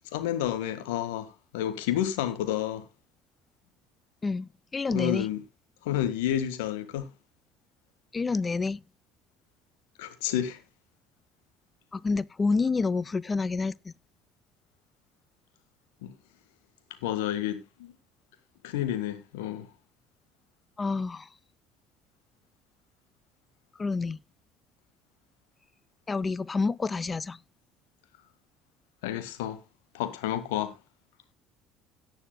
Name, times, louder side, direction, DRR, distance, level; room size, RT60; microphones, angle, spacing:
voice 1, 0.1-2.8 4.9-5.4 5.8-7.1 10.0-10.6 16.0-16.1 17.0-17.9 18.6-19.7 29.0-29.6 29.9-30.7, left 11 dB, 70° left, 1.7 m, -30 dB
voice 2, 4.2-5.3 8.1-8.8 11.9-13.9 20.8-21.3 23.8-24.2 26.1-27.4, left 4 dB, 25° left, 0.6 m, -28 dB
17.5 x 9.2 x 2.2 m
figure-of-eight pair, 60°, 0 cm